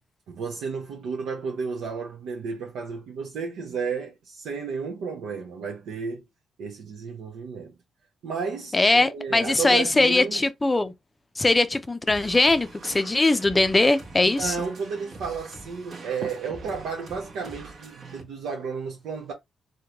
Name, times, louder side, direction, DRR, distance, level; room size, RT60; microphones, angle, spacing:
voice 1, 0.3-6.2 6.6-7.7 8.2-10.4 14.2-19.3, right 5 dB, 80° right, 0.7 m, -32 dB
voice 2, 8.7-10.9 11.4-14.6, left 2 dB, 20° left, 0.5 m, -21 dB
sound 1, 12.1-18.2, right 3 dB, 55° right, 1.0 m, -44 dB
3.7 x 2.2 x 2.9 m
cardioid pair, 85°, 0 cm